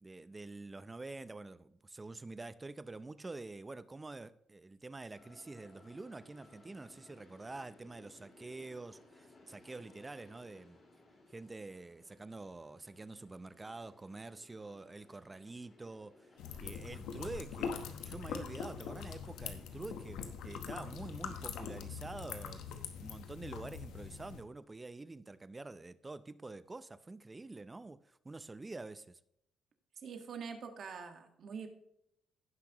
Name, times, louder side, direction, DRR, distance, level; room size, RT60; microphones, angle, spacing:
voice 1, 0.0-10.8 11.3-16.3 16.6-29.2, right 3 dB, 20° right, 0.6 m, -47 dB
sound 1, 5.1-20.1, left 2 dB, 45° left, 3.3 m, -62 dB
sound 2, 16.4-24.4, left 7 dB, 90° left, 1.0 m, -43 dB
voice 2, 30.0-31.7, right 6 dB, 60° right, 1.6 m, -44 dB
16.5 x 5.8 x 3.0 m
cardioid pair, 90°, 0 cm